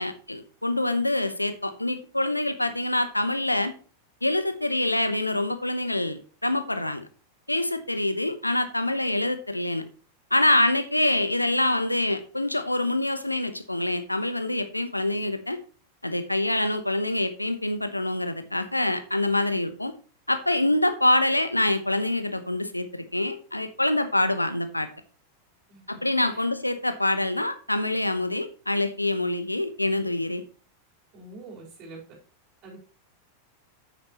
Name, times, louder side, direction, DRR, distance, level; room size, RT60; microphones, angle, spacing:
voice 1, 0.0-3.7 4.2-7.0 7.5-9.8 10.3-15.6 16.0-19.9 20.3-24.9 25.9-30.4, left 1 dB, 85° left, 11 dB, 0.8 m, -25 dB
voice 2, 31.1-32.0 32.6-32.8, right 2 dB, 35° right, -2 dB, 4.0 m, -45 dB
9.4 x 8.8 x 3.0 m, 0.37 s
figure-of-eight pair, 90°, 0 cm